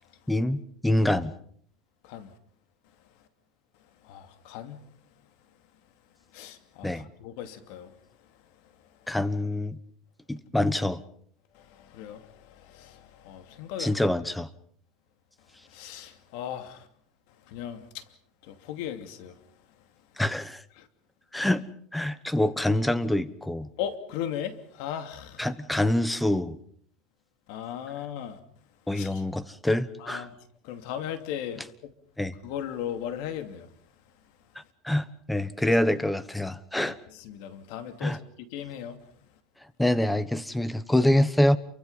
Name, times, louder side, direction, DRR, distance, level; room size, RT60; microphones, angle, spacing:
voice 1, 0.3-1.3 6.8-7.1 9.1-9.8 10.3-11.0 13.8-14.5 20.2-20.6 21.3-21.7 21.9-23.7 25.4-26.6 28.9-30.3 32.2-32.3 34.5-37.0 38.0-38.2 39.8-41.6, left 1 dB, 5° left, 1.2 m, -25 dB
voice 2, 4.0-4.9 6.3-7.9 11.5-14.0 15.6-16.9 17.5-18.0 18.4-19.4 20.8-20.9 23.8-25.5 27.5-28.4 28.9-29.2 30.0-30.4 30.6-31.9 32.4-33.7 35.7-35.8 36.8-39.0, left 10 dB, 70° left, 2.7 m, -37 dB
29.0 x 24.0 x 5.6 m
cardioid pair, 145°, 0 cm